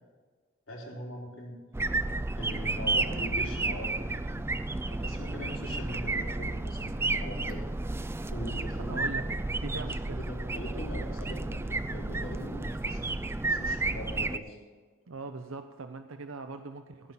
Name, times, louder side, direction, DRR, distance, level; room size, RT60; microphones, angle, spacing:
voice 1, 0.7-1.6 2.4-4.4 4.9-7.6 8.3-9.2 9.7-13.2 13.4-14.6, equal, 80° left, -3 dB, 3.7 m, -41 dB
sound 1, 1.7-14.4, right 2 dB, 10° right, 0.3 m, -32 dB
voice 2, 8.8-9.3 9.6-10.2 15.1-17.1, right 3 dB, 80° right, 8 dB, 0.6 m, -41 dB
16.5 x 5.5 x 7.6 m, 1.4 s
head